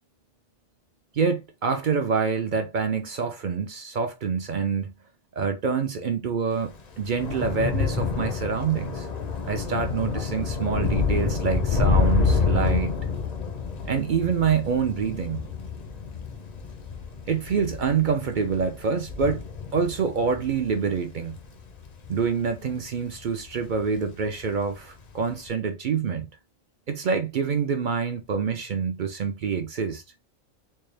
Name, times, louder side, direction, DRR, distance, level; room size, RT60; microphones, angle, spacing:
voice 1, 1.1-4.9 5.4-9.1 9.4-12.9 13.8-15.4 17.3-19.4 19.7-21.3 22.1-26.3 26.9-30.0, right 6 dB, 55° right, 0.6 m, -26 dB
Thunder / Rain, 6.6-23.2 23.5-24.0 24.2-24.4, left 5 dB, 45° left, 0.6 m, -28 dB
4.4 x 2.2 x 3.2 m
omnidirectional pair, 1.3 m